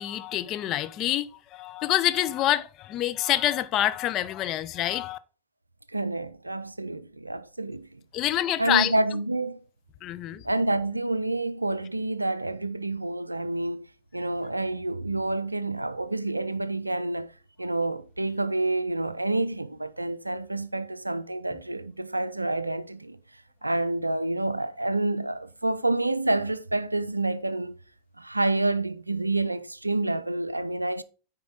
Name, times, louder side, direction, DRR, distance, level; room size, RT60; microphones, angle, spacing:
voice 1, 0.0-5.2 8.1-8.9 10.0-10.4, left 13 dB, 35° left, 0.6 m, -26 dB
voice 2, 5.9-8.0 8.6-9.6 10.4-13.9 14.1-17.3 17.6-23.2 23.6-27.8 28.2-31.0, right 2 dB, 85° right, 0.4 m, -28 dB
9.4 x 4.8 x 3.9 m
figure-of-eight pair, 90°, 0 cm